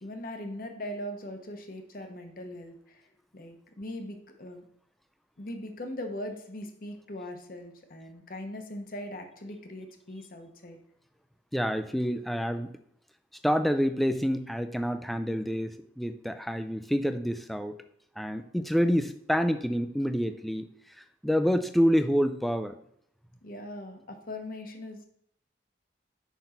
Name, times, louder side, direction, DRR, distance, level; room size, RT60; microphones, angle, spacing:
voice 1, 0.0-3.0 3.3-4.6 5.4-10.8 23.4-25.1, left 1 dB, 50° left, 5 dB, 0.9 m, -40 dB
voice 2, 11.5-12.7 13.4-17.7 18.2-20.6 21.2-22.8, equal, ahead, 9 dB, 0.3 m, -27 dB
5.9 x 5.4 x 4.3 m, 0.70 s
head